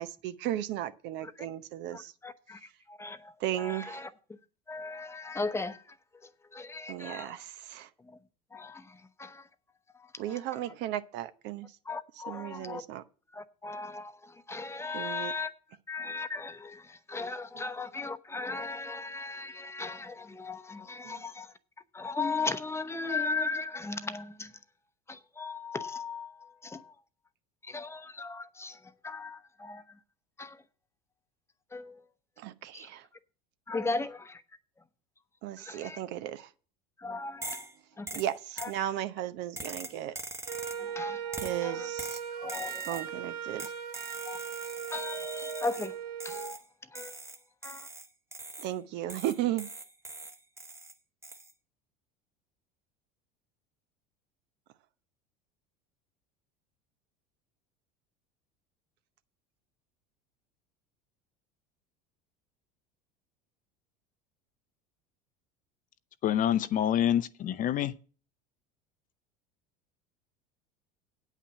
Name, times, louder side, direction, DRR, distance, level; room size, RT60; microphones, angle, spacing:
voice 1, 0.0-2.1 3.4-4.0 6.9-7.9 10.2-11.7 12.3-13.0 14.9-15.3 21.0-21.2 32.4-33.1 35.4-36.5 38.2-40.1 41.4-42.2 42.9-43.7 48.6-49.7, right 12 dB, 60° right, 0.7 m, -35 dB
voice 2, 1.9-4.4 4.7-6.0 6.2-7.4 8.0-8.2 8.5-9.5 9.9-10.7 11.8-12.8 13.3-15.5 15.9-21.5 21.9-24.6 25.1-26.9 27.6-30.0 30.4-30.6 31.7-32.0 32.7-32.9 33.7-34.4 35.6-36.0 37.0-37.7 38.0-38.2 38.6-38.7 40.7-41.9 42.3-43.1 43.6-43.7 44.2-44.5 44.9-46.0 46.2-47.2 47.6-47.9, left 3 dB, 15° left, 0.8 m, -38 dB
sound 1, 37.4-37.7 38.1-38.8 39.6-40.9 41.3-41.6 42.0-43.1 43.6-45.9 46.2-46.6 47.0-48.7 49.1-50.9 51.2-51.5, right 2 dB, 15° right, 1.0 m, -43 dB
Wind instrument woodwind instrument, 40.5-46.6, right 8 dB, 80° right, 1.0 m, -38 dB
voice 3, 66.2-67.9, left 10 dB, 40° left, 0.6 m, -27 dB
8.6 x 5.8 x 8.1 m
hypercardioid pair, 90°, 20 cm